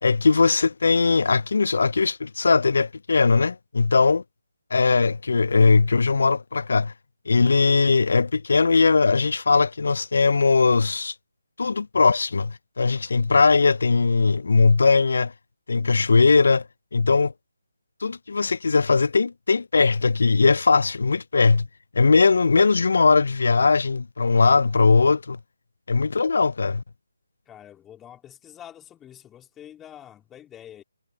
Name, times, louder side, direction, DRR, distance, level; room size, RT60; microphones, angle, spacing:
voice 1, 0.0-4.2 4.7-6.9 7.3-11.1 11.6-15.3 15.7-16.6 16.9-17.3 18.0-21.7 21.9-25.4 25.9-26.8, left 4 dB, 60° left, 0.6 m, -19 dB
voice 2, 27.5-30.8, left 10 dB, 10° left, 4.0 m, -46 dB
figure-of-eight pair, 150°, 0 cm